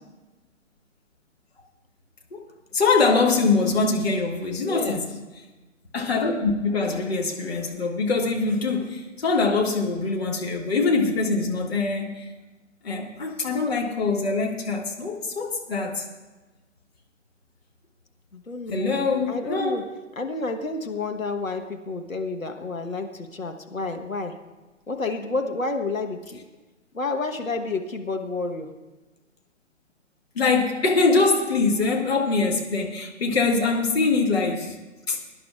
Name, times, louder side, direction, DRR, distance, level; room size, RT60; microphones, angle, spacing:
voice 1, 2.7-5.1 5.9-12.3 12.8-16.1 18.7-19.8 30.4-34.8 35.1-35.2, left 3 dB, 50° left, -1 dB, 2.2 m, -23 dB
voice 2, 4.6-5.0 18.3-19.9 20.2-24.4 24.9-26.4 26.9-28.8, left 3 dB, 85° left, 5 dB, 1.3 m, -30 dB
23.0 x 10.5 x 2.4 m, 1.2 s
figure-of-eight pair, 135°, 39 cm